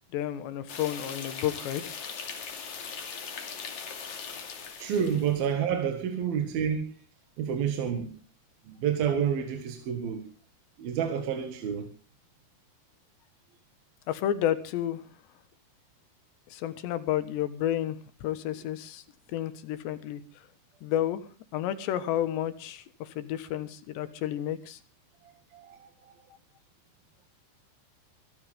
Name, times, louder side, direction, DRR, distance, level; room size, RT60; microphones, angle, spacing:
voice 1, 0.1-1.9 14.1-15.0 16.5-19.0 19.3-20.2 20.8-21.2 21.5-24.8, left 11 dB, 90° left, 3.6 m, -31 dB
sound 1, 0.7-5.4, left 6 dB, 50° left, 3.5 m, -40 dB
voice 2, 4.8-6.9 7.4-8.1 8.7-10.2 10.8-11.9 25.5-26.1, right 8 dB, 65° right, 3.5 m, -29 dB
24.5 x 14.5 x 3.6 m
omnidirectional pair, 4.8 m